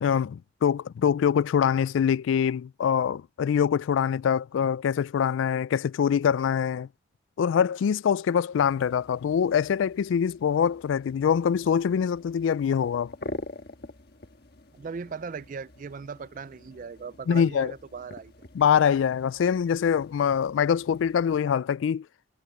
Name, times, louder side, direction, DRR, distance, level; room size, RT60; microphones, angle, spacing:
voice 1, 0.0-6.9 7.4-13.1 17.3-17.7 18.5-22.1, left 7 dB, 80° left, 0.3 m, -24 dB
sound 1, 8.5-21.4, left 2 dB, 55° left, 1.4 m, -46 dB
voice 2, 14.8-18.3, right 5 dB, 45° right, 0.4 m, -38 dB
head